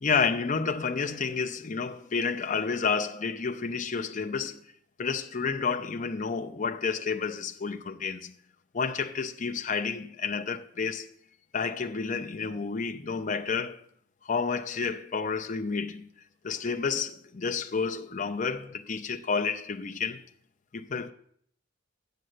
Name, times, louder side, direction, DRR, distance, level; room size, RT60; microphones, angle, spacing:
voice 1, 0.0-4.6 5.0-8.3 8.7-11.1 11.5-13.8 14.2-16.1 16.4-20.2 20.7-21.1, left 5 dB, 40° left, 0.6 m, -30 dB
7.6 x 6.6 x 7.9 m
head